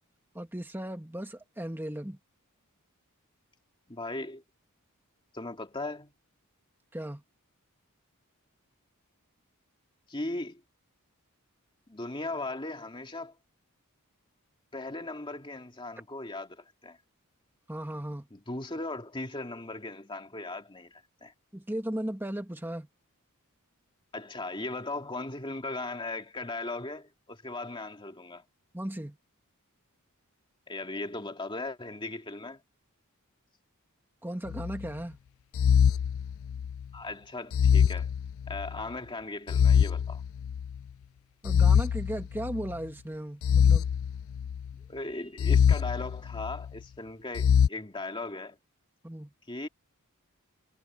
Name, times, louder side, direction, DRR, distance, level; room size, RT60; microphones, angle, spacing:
voice 1, 0.3-2.2 6.9-7.2 17.7-18.3 21.5-22.9 28.7-29.2 34.2-35.2 41.4-43.9 49.0-49.3, right 1 dB, 10° right, 1.7 m, -36 dB
voice 2, 3.9-4.4 5.3-6.1 10.1-10.6 11.9-13.4 14.7-17.0 18.3-21.3 24.1-28.4 30.7-32.6 36.9-38.1 38.5-40.2 44.9-48.6 49.5-49.7, left 2 dB, 20° left, 2.5 m, -38 dB
sound 1, 34.5-34.9 35.6-36.8 37.5-38.8 39.5-40.8 41.5-42.8 43.4-44.7 45.4-46.7 47.4-47.7, left 7 dB, 60° left, 0.3 m, -24 dB
head